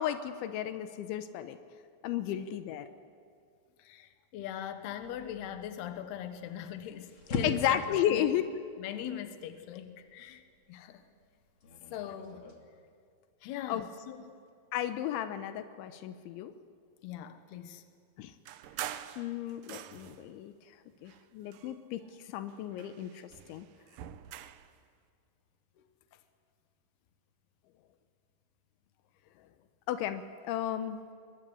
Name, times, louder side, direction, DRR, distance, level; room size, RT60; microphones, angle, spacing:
voice 1, 0.0-1.6 2.0-2.9 7.4-8.4 13.7-13.8 14.7-16.5 18.2-18.3 19.2-20.5 21.0-23.7 29.9-31.0, left 11 dB, 85° left, 9 dB, 3.4 m, -33 dB
voice 2, 3.8-8.3 8.8-10.4 10.7-11.0 11.9-12.5 13.4-14.4 17.0-17.8, left 10 dB, 70° left, 8 dB, 3.2 m, -41 dB
sound 1, 5.0-12.6, left 3 dB, 35° left, 2.7 m, -43 dB
sound 2, 18.4-20.3 21.0-22.2 22.5-24.7, right 11 dB, 85° right, 1.9 m, -45 dB
24.5 x 22.0 x 9.8 m, 2.3 s
omnidirectional pair, 5.2 m